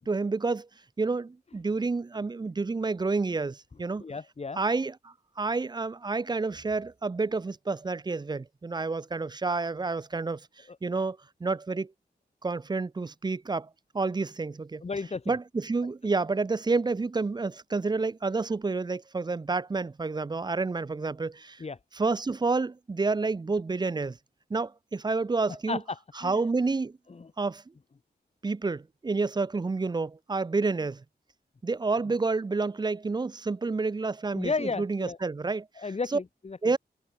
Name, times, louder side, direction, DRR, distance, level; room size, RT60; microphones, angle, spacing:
voice 1, 0.1-0.7 1.0-4.0 4.5-11.9 12.4-13.7 13.9-14.8 15.3-21.6 21.9-24.2 24.5-25.8 26.2-27.0 27.4-27.6 28.4-31.0 31.6-36.2 36.6-36.8, right 3 dB, 25° right, 0.5 m, -29 dB
voice 2, 4.0-4.6 14.8-15.3 21.6-21.8 25.7-25.8 26.2-26.4 34.3-35.2 35.8-36.6, left 4 dB, 35° left, 1.4 m, -33 dB
wide cardioid pair, 125°, 18 cm